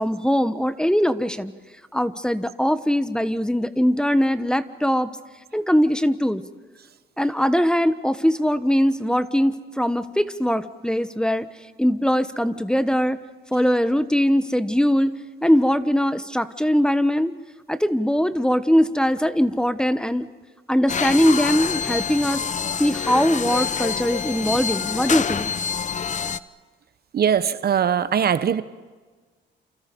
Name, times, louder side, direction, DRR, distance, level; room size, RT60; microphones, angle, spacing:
voice 1, 0.0-1.5 1.9-5.1 5.5-6.4 7.2-11.5 11.8-13.2 13.5-15.1 15.4-17.3 17.7-20.3 20.7-22.4 22.8-25.5, equal, 5° left, 12 dB, 1.2 m, -21 dB
sound 1, 20.9-26.4, left 6 dB, 40° left, 0.9 m, -26 dB
voice 2, 27.1-28.6, right 8 dB, 50° right, 13 dB, 1.1 m, -21 dB
28.5 x 28.5 x 5.4 m, 1.4 s
cardioid pair, 90°, 20 cm